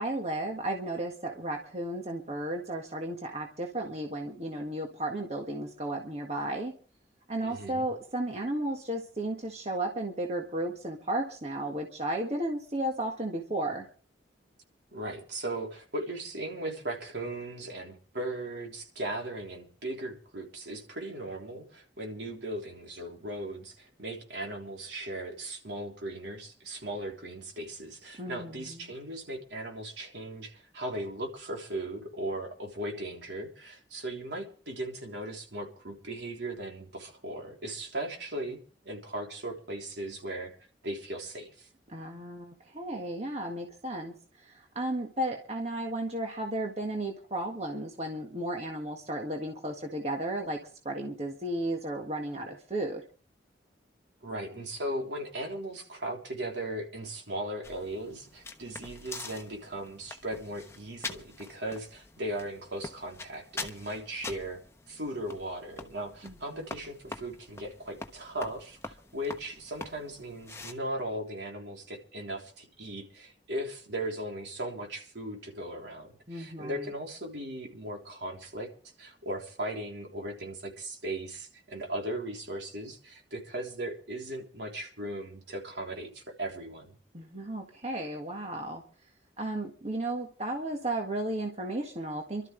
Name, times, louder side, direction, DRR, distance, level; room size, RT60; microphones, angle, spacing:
voice 1, 0.0-6.7 7.3-13.9 28.2-28.9 41.9-50.6 50.8-53.0 66.2-66.6 76.3-76.9 87.1-88.8 89.4-92.5, right 1 dB, 35° right, 2 dB, 1.7 m, -34 dB
voice 2, 7.4-7.9 14.9-38.6 38.8-40.5 40.8-41.7 54.2-64.6 64.9-78.7 79.0-86.9, right 1 dB, 75° right, 1 dB, 3.5 m, -38 dB
sound 1, 57.6-70.7, left 3 dB, 15° left, 1.0 m, -45 dB
27.0 x 12.5 x 3.3 m, 0.40 s
head